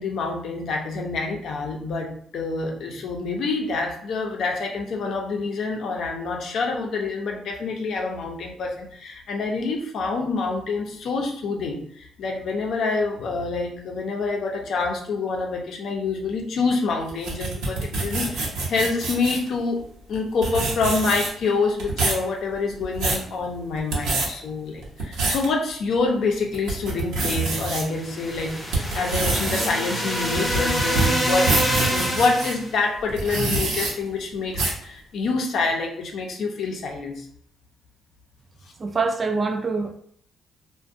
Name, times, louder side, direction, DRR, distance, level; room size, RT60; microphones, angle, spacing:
voice 1, 0.0-19.8 20.1-31.5 31.8-37.3, left 3 dB, 70° left, 0.5 m, -27 dB
sound 1, 17.1-19.5 20.1-20.2 20.4-21.5 21.8-22.2 22.7-23.2 23.8-24.3 24.8-25.5 26.0-26.1 26.5-27.8 28.3-32.5 33.1-33.9 34.5-34.8, right 3 dB, 90° right, 0.7 m, -26 dB
sound 2, 27.8-32.7, equal, 5° left, 0.7 m, -26 dB
voice 2, 38.8-40.0, right 4 dB, 35° right, 0.3 m, -25 dB
2.4 x 2.1 x 2.6 m
cardioid pair, 90°, 0 cm